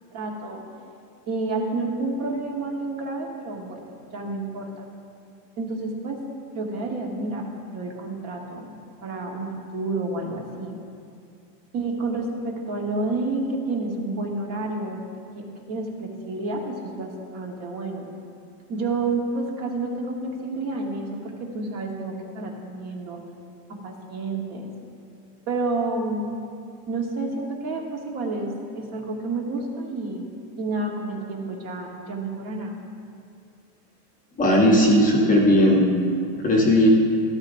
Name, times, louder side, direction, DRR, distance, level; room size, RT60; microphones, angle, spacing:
voice 1, 0.1-0.6 1.3-4.9 5.6-6.2 6.5-8.7 9.0-10.8 11.7-15.0 15.3-18.1 18.7-23.2 23.7-24.7 25.5-26.3 26.9-30.3 30.6-32.8, right 2 dB, 30° right, 1 dB, 1.3 m, -30 dB
voice 2, 34.4-35.9 36.4-36.9, equal, 15° left, -2 dB, 1.0 m, -17 dB
13.0 x 12.5 x 2.6 m, 2.4 s
supercardioid pair, 145°, 48 cm